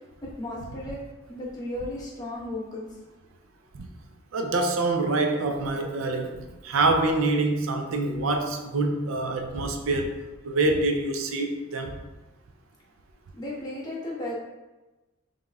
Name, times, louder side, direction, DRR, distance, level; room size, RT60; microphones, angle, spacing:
voice 1, 0.4-1.0 1.3-2.9 13.4-14.3, left 1 dB, 20° left, -7 dB, 1.1 m, -34 dB
voice 2, 4.3-10.1 10.4-11.9, right 2 dB, 70° right, 4 dB, 0.5 m, -25 dB
5.2 x 3.6 x 2.3 m, 1.1 s
head